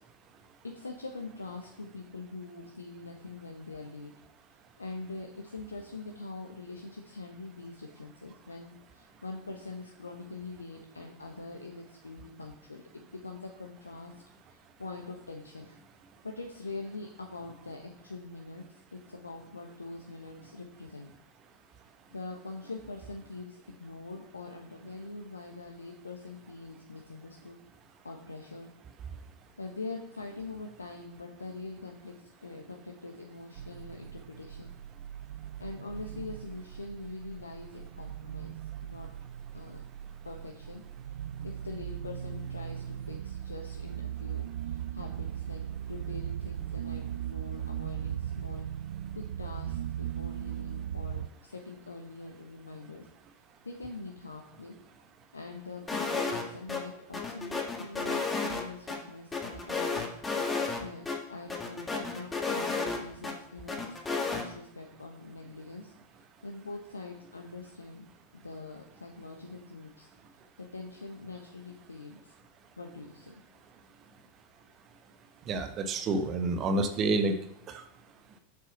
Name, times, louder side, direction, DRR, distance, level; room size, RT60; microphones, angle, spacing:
voice 1, 0.6-4.1 4.5-15.8 16.2-21.1 22.1-27.6 28.0-28.7 29.6-34.7 35.6-38.5 38.8-39.1 39.5-39.8 40.2-40.8 41.4-45.6 45.9-48.7 49.1-53.1 53.6-54.7 55.3-60.1 60.8-64.0 64.3-68.1 68.3-70.1 70.6-72.3 72.8-73.4, left 3 dB, 80° left, 2 dB, 1.1 m, -43 dB
sound 1, 33.6-51.3, right 10 dB, 60° right, 0.4 m, -38 dB
sound 2, 55.9-56.4 56.7-56.8 57.1-59.0 59.3-60.8 61.1-61.2 61.5-63.3 63.7-64.4, left 4 dB, 15° left, 1.8 m, -32 dB
voice 2, 75.5-77.4 77.7-77.8, right 2 dB, 30° right, 7 dB, 1.2 m, -28 dB
7.5 x 7.4 x 5.8 m, 0.71 s
figure-of-eight pair, 90°, 0 cm